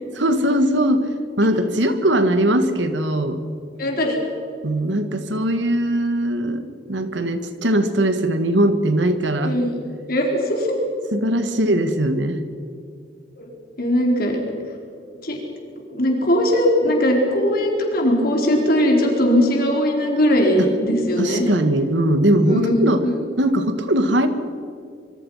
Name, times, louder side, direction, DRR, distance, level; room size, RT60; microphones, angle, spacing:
voice 1, 0.2-1.1 1.4-3.4 4.6-9.6 11.1-12.4 20.6-20.7 21.2-23.0 23.4-24.3, right 1 dB, 80° right, 9 dB, 2.0 m, -20 dB
voice 2, 3.8-4.2 9.4-9.8 10.1-10.7 13.4-13.5 13.8-14.4 15.2-15.4 15.9-21.4 22.5-22.7 23.0-23.2, equal, 55° left, 1 dB, 4.5 m, -19 dB
25.5 x 24.5 x 5.8 m, 2.4 s
head